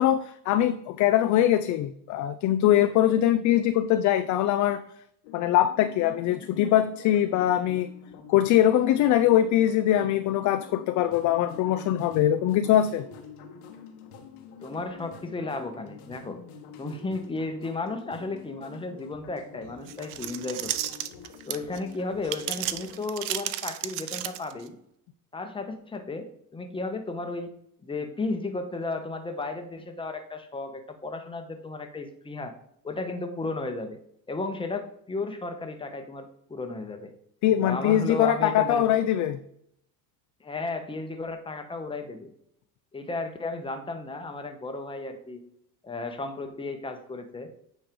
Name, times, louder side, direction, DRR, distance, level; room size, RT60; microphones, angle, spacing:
voice 1, 0.0-4.8 5.3-7.9 8.3-13.1 37.4-39.4, left 12 dB, 45° left, 10 dB, 0.4 m, -22 dB
sound 1, 5.2-23.1, left 6 dB, 85° left, 1.4 m, -47 dB
voice 2, 14.6-16.4 16.8-20.9 21.5-24.8 25.3-27.5 27.8-32.5 32.8-34.0 34.3-37.1 37.6-38.9 40.4-42.3 42.9-45.4 45.8-47.5, left 3 dB, 10° left, 6 dB, 1.0 m, -34 dB
sound 2, 19.9-21.8 22.2-24.7, right 14 dB, 80° right, 0.7 m, -33 dB
8.9 x 3.2 x 5.1 m, 0.71 s
supercardioid pair, 105°, 44 cm